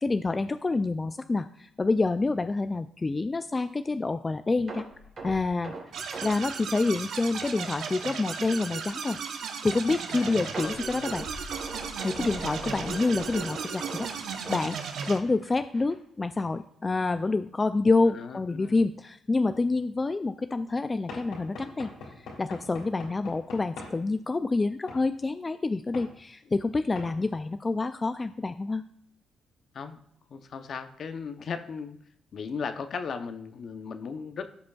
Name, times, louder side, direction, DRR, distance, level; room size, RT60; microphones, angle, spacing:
voice 1, 0.0-4.9 5.2-5.7 6.2-9.2 9.6-11.2 12.0-14.8 15.1-21.9 22.2-28.8, left 3 dB, 25° left, 10 dB, 0.3 m, -27 dB
sound 1, 4.7-7.7 8.0-8.2 8.7-8.8 10.5-15.4 15.7-15.9 16.4-16.5, right 3 dB, 45° right, 2.9 m, -41 dB
sound 2, 5.9-15.2, right 6 dB, 70° right, 0.9 m, -36 dB
voice 2, 10.1-11.1 18.1-18.8 29.7-30.0 30.3-32.0 32.3-34.5, left 5 dB, 55° left, 9 dB, 0.7 m, -37 dB
Knock / Wood, 21.1-24.0 24.9-25.1 25.9-26.1 26.9-27.1, left 3 dB, 85° left, 2.4 m, -42 dB
15.0 x 5.0 x 2.3 m, 0.72 s
cardioid pair, 90°, 0 cm